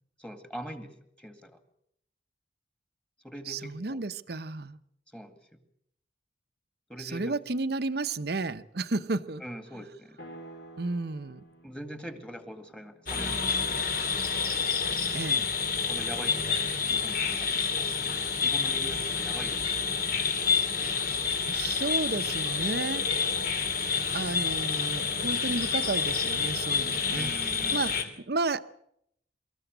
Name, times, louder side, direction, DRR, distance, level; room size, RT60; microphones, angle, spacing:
voice 1, 0.2-0.9 1.2-1.6 3.2-4.0 5.1-5.4 6.9-7.4 9.4-10.2 11.6-13.7 15.8-17.9 18.4-19.9 27.1-27.8, equal, 5° left, 8 dB, 2.1 m, -42 dB
voice 2, 3.5-4.8 7.0-9.4 9.7-9.8 10.8-11.4 15.1-15.5 21.5-23.0 24.1-27.3 27.7-28.6, right 3 dB, 60° right, 12 dB, 0.9 m, -32 dB
sound 1, 10.2-14.3, right 1 dB, 75° left, 4.8 m, -51 dB
sound 2, 13.1-28.0, left 5 dB, 55° left, 2.8 m, -28 dB
24.5 x 14.5 x 8.1 m, 0.74 s
head